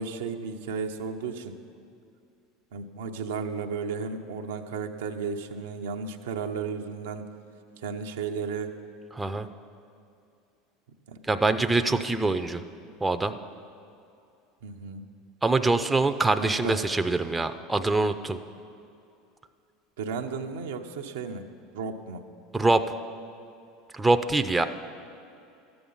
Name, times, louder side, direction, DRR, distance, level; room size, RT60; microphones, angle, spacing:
voice 1, 0.0-1.5 2.7-7.2 7.8-8.7 11.1-11.2 14.6-15.0 16.4-16.8 20.0-21.5 21.7-22.2, right 5 dB, 80° right, 4 dB, 0.7 m, -34 dB
voice 2, 9.1-9.5 11.3-12.6 13.0-13.3 15.4-18.4 22.5-22.9 23.9-24.7, right 2 dB, 10° right, 8 dB, 0.6 m, -24 dB
13.0 x 8.8 x 5.5 m, 2.6 s
hypercardioid pair, 85°, 0 cm